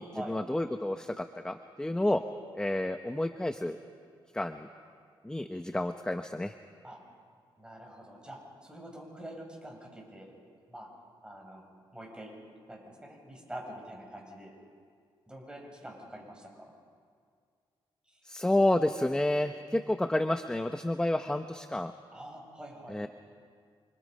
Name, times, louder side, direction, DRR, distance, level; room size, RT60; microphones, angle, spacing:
voice 1, 0.0-2.2 2.5-3.8 4.3-4.7 5.2-6.5 18.2-21.9 22.9-23.1, left 1 dB, 10° left, 8 dB, 0.9 m, -30 dB
voice 2, 7.6-10.3 10.7-10.9 11.2-11.6 11.9-12.3 12.7-14.5 15.3-16.7 18.1-18.2 22.1-23.0, right 1 dB, 10° right, 0 dB, 7.4 m, -45 dB
29.5 x 25.5 x 5.5 m, 2.1 s
cardioid pair, 90°, 9 cm